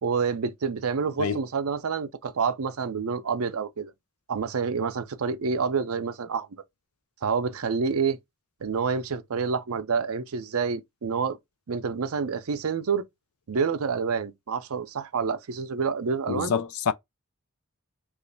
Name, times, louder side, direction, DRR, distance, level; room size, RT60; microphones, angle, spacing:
voice 1, 0.0-3.9 4.3-6.5 7.2-8.2 8.6-11.4 11.7-13.0 13.5-16.6, right 5 dB, 80° right, 0.6 m, -28 dB
voice 2, 16.3-16.9, left 6 dB, 80° left, 0.4 m, -26 dB
3.1 x 2.5 x 3.9 m
head